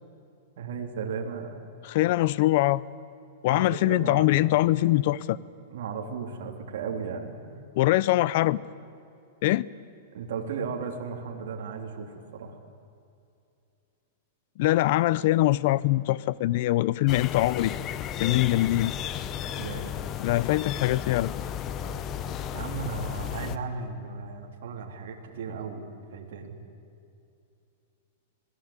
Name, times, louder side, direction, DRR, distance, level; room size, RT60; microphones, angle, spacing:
voice 1, 0.6-1.5 3.5-4.5 5.7-7.5 10.1-12.6 19.5-19.9 22.5-25.8 26.1-26.5, right 5 dB, 65° right, 2 dB, 3.5 m, -35 dB
voice 2, 1.9-2.8 3.4-5.4 7.8-8.6 9.4-9.6 14.6-17.7 18.2-18.9 20.2-21.3, left 16 dB, 50° left, 20 dB, 0.6 m, -23 dB
sound 1, 17.1-23.6, left 9 dB, 25° left, 0.9 m, -34 dB
26.5 x 19.0 x 9.0 m, 2.6 s
supercardioid pair, 155°, 0 cm